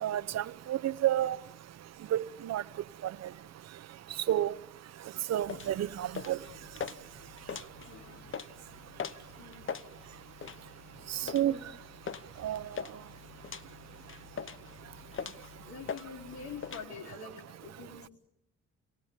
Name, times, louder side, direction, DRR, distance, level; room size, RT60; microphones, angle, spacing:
voice 1, 0.0-1.4 2.1-2.6 3.0-3.1 4.3-4.5 5.3-6.4 11.1-11.6 12.4-12.6, right 12 dB, 60° right, 0.9 m, -30 dB
sound 1, 5.4-16.9, left 7 dB, 45° left, 1.1 m, -43 dB
voice 2, 7.9-8.2 9.4-9.6 11.2-11.6 15.7-17.3 17.6-18.1, left 5 dB, 65° left, 4.5 m, -45 dB
28.5 x 19.0 x 8.9 m
cardioid pair, 90°, 30 cm